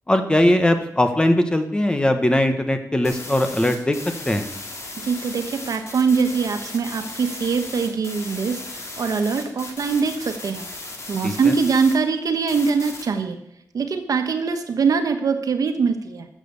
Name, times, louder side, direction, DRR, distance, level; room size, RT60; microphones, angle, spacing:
voice 1, 0.1-4.0 4.3-4.5 11.2-11.5, left 1 dB, 15° left, 8 dB, 1.1 m, -20 dB
sound 1, 3.0-11.9 12.5-13.0, left 2 dB, 50° left, 2.7 m, -36 dB
voice 2, 5.0-10.7 11.1-13.4 13.7-16.3, right 5 dB, 70° right, 7 dB, 1.4 m, -22 dB
13.5 x 7.6 x 6.8 m, 0.80 s
wide cardioid pair, 130°, 6 cm